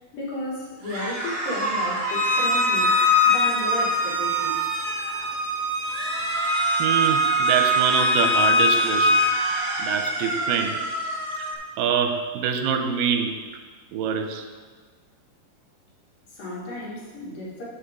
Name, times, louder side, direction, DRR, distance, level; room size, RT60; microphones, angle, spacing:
voice 1, 0.1-3.0 3.3-4.8 16.3-17.6, left 1 dB, 80° left, -5 dB, 3.6 m, -33 dB
sound 1, 0.8-5.3 5.8-11.5, right 2 dB, 35° right, 1.6 m, -30 dB
Bowed string instrument, 2.1-9.3, left 1 dB, 50° left, 2.1 m, -22 dB
voice 2, 6.8-9.2 9.8-10.8 11.4-13.4 13.9-14.4, right 7 dB, 90° right, 5 dB, 2.3 m, -25 dB
13.5 x 5.1 x 3.6 m, 1.5 s
omnidirectional pair, 3.9 m